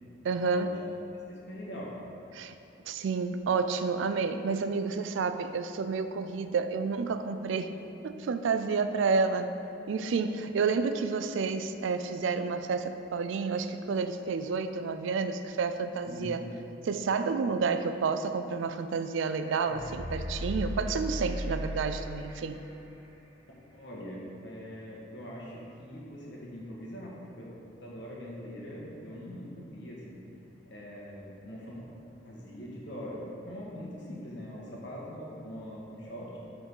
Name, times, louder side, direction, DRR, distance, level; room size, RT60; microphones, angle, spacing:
voice 1, 0.2-0.8 2.3-2.5 2.9-7.8 8.0-9.5 9.9-16.4 16.8-22.6, right 4 dB, 70° right, 9 dB, 0.3 m, -30 dB
voice 2, 1.3-1.9 16.1-16.4 23.7-27.5 27.8-30.2 30.7-31.8 32.2-36.4, equal, 60° left, -4 dB, 1.4 m, -42 dB
sound 1, 19.4-22.3 22.6-22.7, equal, 25° left, 1.5 m, -35 dB
7.8 x 3.9 x 5.5 m, 2.8 s
head